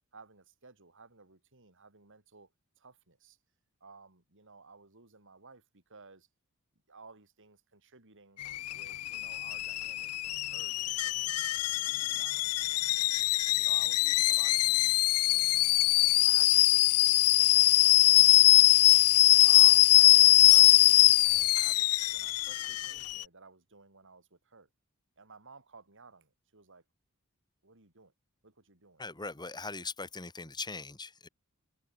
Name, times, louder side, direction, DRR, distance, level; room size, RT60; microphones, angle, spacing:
voice 1, 0.1-2.5 2.8-3.4 3.8-6.3 6.9-8.4 8.7-13.1 13.6-15.7 16.2-18.5 19.4-24.7 25.2-26.8 27.6-28.1 28.4-29.0, right 4 dB, 60° right, 4.5 m, -55 dB
Alarm / Boiling, 8.4-23.2, left 17 dB, 85° left, 0.6 m, -23 dB
voice 2, 29.0-31.3, left 4 dB, 20° left, 2.5 m, -40 dB
head